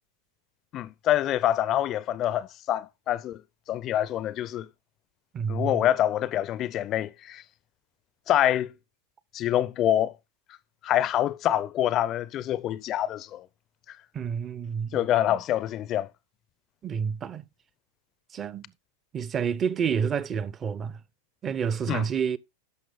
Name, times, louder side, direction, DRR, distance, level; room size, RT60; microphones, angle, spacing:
voice 1, 0.7-3.4 3.7-4.7 5.5-7.4 8.3-8.7 9.3-10.1 10.8-13.5 14.9-16.1 21.9-22.0, left 12 dB, 35° left, 0.4 m, -26 dB
voice 2, 5.3-5.8 14.1-15.0 15.3-15.4 16.8-17.5 18.3-18.7 19.1-21.0 21.4-22.4, right 7 dB, 25° right, 0.6 m, -29 dB
11.0 x 6.3 x 3.9 m
figure-of-eight pair, 90°, 0 cm